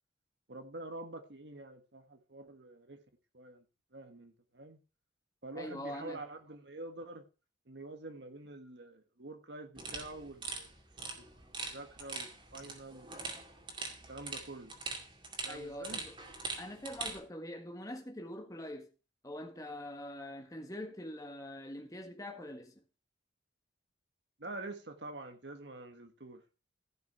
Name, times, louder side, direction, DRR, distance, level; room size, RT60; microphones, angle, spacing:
voice 1, 0.5-3.0 3.3-3.6 3.9-4.8 5.4-7.2 7.7-10.7 11.2-11.3 11.6-13.3 14.1-14.7 15.4-16.0 24.4-26.4, right 2 dB, 65° right, 1.4 m, -47 dB
voice 2, 5.5-6.2 15.5-16.2 16.6-18.9 19.2-22.7, left 1 dB, 20° left, 1.6 m, -44 dB
sound 1, 9.8-17.2, right 3 dB, 25° right, 2.3 m, -43 dB
15.5 x 6.0 x 4.7 m
head